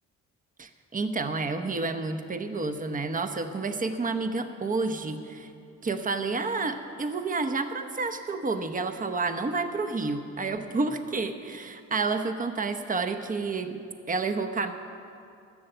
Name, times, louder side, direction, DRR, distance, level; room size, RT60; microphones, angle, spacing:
voice 1, 0.6-5.5 5.8-13.8 14.1-14.7, right 3 dB, 25° right, 8 dB, 0.9 m, -30 dB
14.0 x 6.7 x 8.1 m, 2.5 s
cardioid pair, 90°, 30 cm